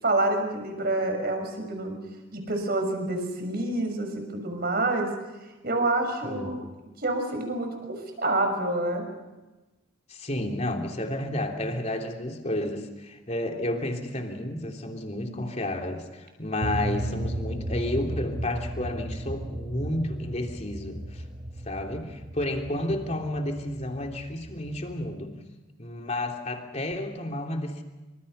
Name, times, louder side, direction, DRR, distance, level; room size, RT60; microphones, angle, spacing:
voice 1, 0.0-2.0 2.3-5.1 5.6-6.6 7.0-9.0, right 2 dB, 50° right, 5 dB, 6.2 m, -27 dB
voice 2, 10.1-21.2 21.7-25.4 25.8-27.8, left 1 dB, 35° left, 3 dB, 3.3 m, -31 dB
sound 1, 16.6-25.1, right 1 dB, 30° right, 1.0 m, -35 dB
28.5 x 26.0 x 5.7 m, 1.1 s
head